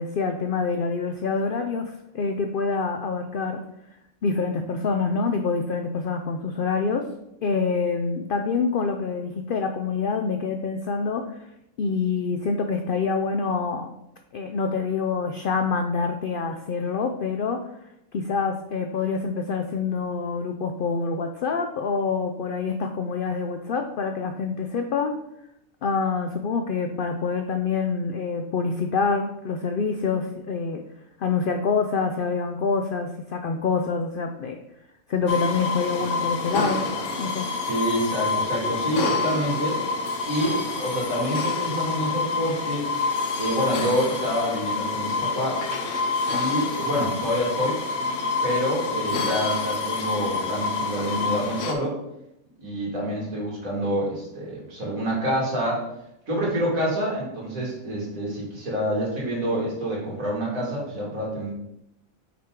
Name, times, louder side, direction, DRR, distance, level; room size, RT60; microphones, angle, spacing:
voice 1, 0.0-3.6 4.2-7.1 7.4-11.4 11.8-13.9 14.3-17.6 18.1-25.1 25.8-30.8 31.2-34.6 35.1-36.8 37.2-37.5, left 5 dB, 90° left, 5 dB, 0.4 m, -26 dB
sound 1, 35.3-51.7, left 4 dB, 65° left, 1.0 m, -27 dB
voice 2, 37.6-39.8 40.3-42.9 43.4-45.7 46.3-47.8 48.4-52.0 52.6-55.9 56.3-61.5, equal, 75° right, -5 dB, 2.5 m, -27 dB
5.9 x 4.5 x 3.7 m, 0.81 s
omnidirectional pair, 1.5 m